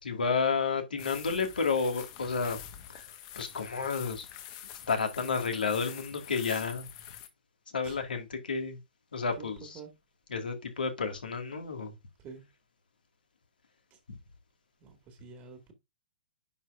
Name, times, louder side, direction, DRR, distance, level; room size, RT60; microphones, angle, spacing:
voice 1, 0.0-2.6 2.9-3.0 3.4-4.3 4.9-6.9 7.7-8.8 9.1-9.8 10.3-11.9, left 5 dB, 70° left, 2.0 m, -31 dB
sound 1, 1.0-7.3, left 10 dB, 40° left, 1.3 m, -46 dB
voice 2, 14.8-15.7, right 5 dB, 30° right, 2.0 m, -47 dB
9.7 x 4.6 x 2.5 m
figure-of-eight pair, 115°, 5 cm